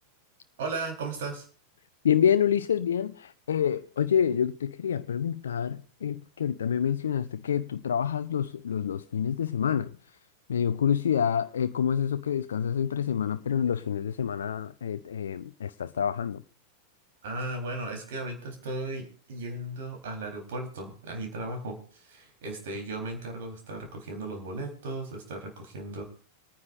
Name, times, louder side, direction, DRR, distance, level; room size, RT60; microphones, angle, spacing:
voice 1, 0.6-1.5 17.2-26.0, right 2 dB, 55° right, 3.7 m, -36 dB
voice 2, 2.0-9.9 10.5-16.4, left 8 dB, 65° left, 0.6 m, -27 dB
27.0 x 9.5 x 2.5 m
figure-of-eight pair, 90°, 0 cm